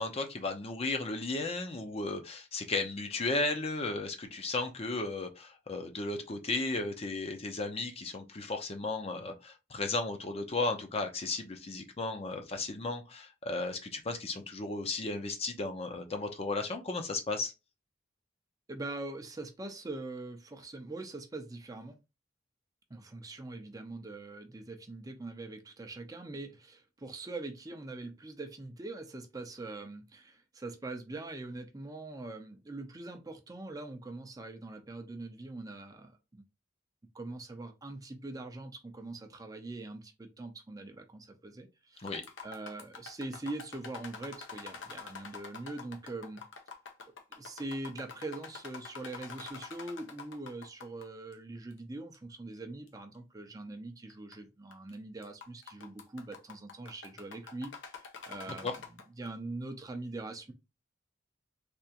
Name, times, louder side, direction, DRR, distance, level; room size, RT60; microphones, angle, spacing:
voice 1, 0.0-17.5 42.0-42.2 58.6-58.7, left 3 dB, 30° left, 0.6 m, -35 dB
voice 2, 18.7-22.0 22.9-36.5 37.1-42.1 42.4-46.4 47.4-60.5, right 2 dB, 20° right, 0.5 m, -43 dB
sound 1, 42.0-51.0 51.3-51.4 52.1-52.2 52.9-53.0 54.1-54.3 54.7-54.9 55.2-59.3, left 5 dB, 90° left, 0.8 m, -46 dB
3.4 x 2.9 x 2.8 m
head